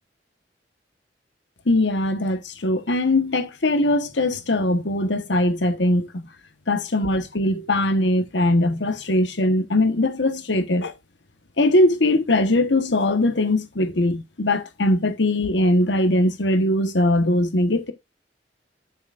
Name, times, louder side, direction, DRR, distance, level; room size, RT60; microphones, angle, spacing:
voice 1, 1.7-6.3 6.7-10.9 11.6-17.9, left 1 dB, 75° left, 1.2 m, -21 dB
9.7 x 7.8 x 2.5 m
head